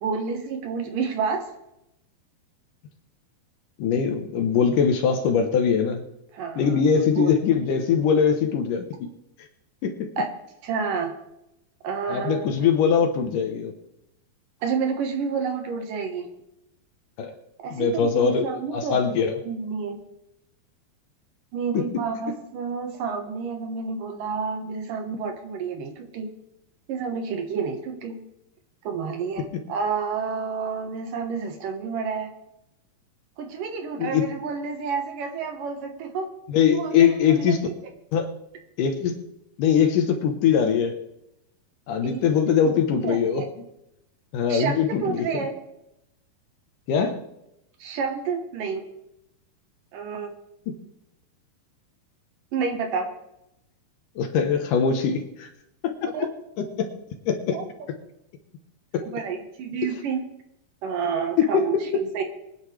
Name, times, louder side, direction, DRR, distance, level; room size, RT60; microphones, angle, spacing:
voice 1, 0.0-1.5 6.3-6.8 7.2-7.3 10.2-10.3 10.6-11.1 11.8-12.7 14.6-16.3 17.6-20.0 21.5-26.3 26.9-28.2 28.8-32.3 33.4-36.3 36.7-37.6 42.0-42.2 42.6-42.7 43.0-43.5 44.5-45.5 47.8-48.8 49.9-50.3 52.5-53.1 56.1-56.3 57.5-57.7 59.0-60.2 60.8-62.2, right 5 dB, 70° right, 4 dB, 2.7 m, -29 dB
voice 2, 3.8-6.0 6.6-8.9 9.8-10.1 12.1-13.7 17.2-17.3 17.7-19.4 21.7-21.8 34.0-34.3 36.5-37.6 38.1-38.3 38.8-39.2 39.6-41.0 41.9-43.4 44.3-45.3 46.9-47.2 54.2-55.5 55.8-56.3 56.6-56.9 57.3-57.6 58.9-59.0 61.4-61.7 61.9-62.0, left 7 dB, 70° left, 5 dB, 2.4 m, -22 dB
24.5 x 9.8 x 3.3 m, 0.85 s
omnidirectional pair, 4.3 m